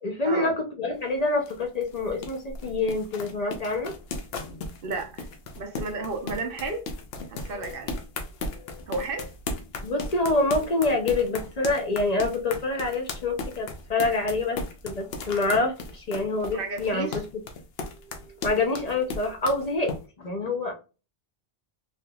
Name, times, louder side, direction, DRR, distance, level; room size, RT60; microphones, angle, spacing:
voice 1, 0.0-3.9 7.6-7.8 8.5-8.9 9.8-17.1 18.0-20.7, left 2 dB, 45° left, 0.7 m, -27 dB
sound 1, 0.9-20.0, left 3 dB, 75° left, 0.9 m, -36 dB
voice 2, 4.8-5.3 5.6-6.9 7.3-8.0 8.9-9.3 16.5-17.2, right 3 dB, 65° right, 0.9 m, -32 dB
3.4 x 2.8 x 2.2 m
omnidirectional pair, 1.0 m